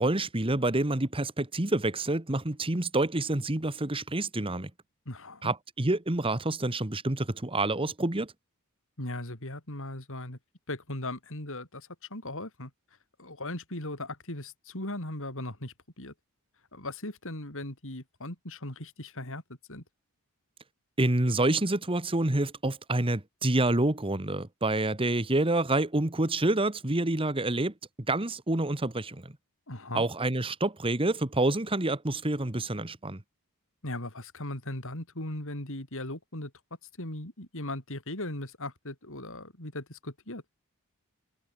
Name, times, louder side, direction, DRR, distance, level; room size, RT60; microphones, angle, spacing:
voice 1, 0.0-4.7 5.4-8.3 21.0-27.7 28.1-29.3 29.9-33.2, right 2 dB, 25° right, 1.5 m, -28 dB
voice 2, 5.1-5.5 9.0-10.4 10.7-12.7 13.2-16.1 16.7-19.4 19.7-19.8 29.7-30.0 33.8-36.5 37.0-40.4, left 1 dB, 60° left, 5.9 m, -38 dB
head